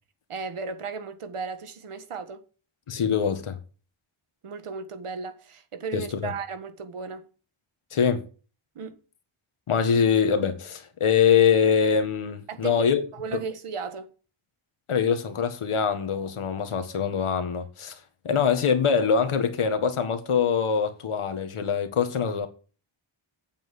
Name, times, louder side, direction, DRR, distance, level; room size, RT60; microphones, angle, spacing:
voice 1, 0.3-2.4 4.4-7.3 8.7-9.0 12.5-14.1, right 5 dB, 90° right, 1.7 m, -35 dB
voice 2, 2.9-3.6 5.9-6.3 7.9-8.3 9.7-13.1 14.9-22.5, left 7 dB, 80° left, 1.8 m, -24 dB
9.0 x 7.6 x 7.6 m
wide cardioid pair, 160°, 49 cm